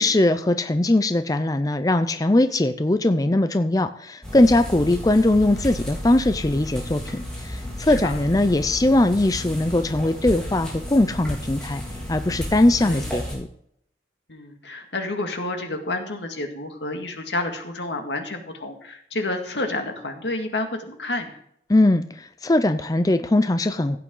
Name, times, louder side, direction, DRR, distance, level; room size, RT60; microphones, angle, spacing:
voice 1, 0.0-11.8 12.1-13.5 21.7-24.0, left 1 dB, 20° left, 10 dB, 0.5 m, -20 dB
sound 1, 4.2-13.3, left 1 dB, 5° left, 3.9 m, -33 dB
voice 2, 7.9-8.2 12.8-13.1 14.3-21.4, left 2 dB, 85° left, 4 dB, 2.0 m, -30 dB
15.5 x 8.7 x 3.8 m, 0.69 s
head